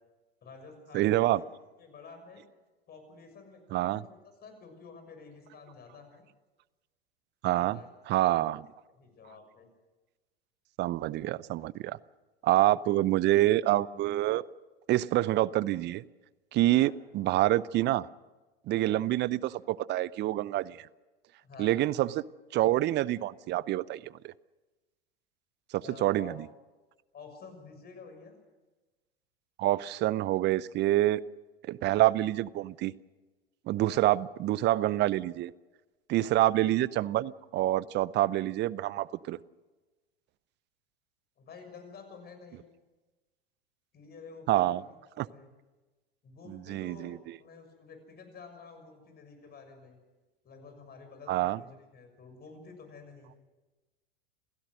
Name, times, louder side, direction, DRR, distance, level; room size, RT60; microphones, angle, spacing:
voice 1, 0.4-1.4 1.8-2.4 2.9-6.2 7.5-7.9 8.2-8.5 9.0-9.7 12.7-12.8 16.8-16.9 18.7-19.0 21.4-21.8 25.8-26.4 27.1-28.3 33.8-34.1 36.1-36.4 41.4-42.6 43.9-44.8 45.1-45.5 46.2-50.0 50.4-53.3, left 5 dB, 30° left, 7 dB, 6.5 m, -50 dB
voice 2, 0.9-1.4 3.7-4.0 7.4-7.8 8.1-8.6 10.8-12.0 12.4-14.4 14.9-16.0 16.5-18.1 18.7-20.9 21.6-22.2 22.5-24.3 25.7-26.4 29.6-31.2 31.7-32.9 33.7-35.5 36.1-39.4 44.5-44.8 45.2-45.3 46.5-47.4 51.3-51.6, right 15 dB, 35° right, 20 dB, 0.7 m, -27 dB
28.0 x 16.0 x 6.4 m, 1.2 s
hypercardioid pair, 90°, 31 cm